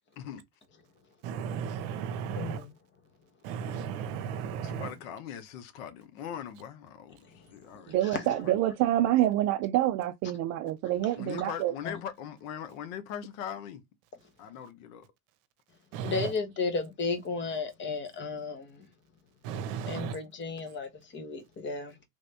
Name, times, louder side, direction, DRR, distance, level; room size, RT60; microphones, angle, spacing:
voice 1, 1.2-2.6 3.4-4.9 15.9-16.3 19.4-20.2, right 7 dB, 60° right, 0.9 m, -35 dB
voice 2, 2.4-2.7 8.1-8.2 11.8-12.0 16.0-18.7 19.9-21.9, left 4 dB, 25° left, 1.0 m, -33 dB
voice 3, 4.6-8.5 11.2-13.8 14.4-15.0, left 9 dB, 70° left, 1.0 m, -41 dB
voice 4, 7.9-11.7, right 13 dB, 40° right, 0.4 m, -27 dB
3.4 x 2.6 x 3.4 m
supercardioid pair, 120°, 43 cm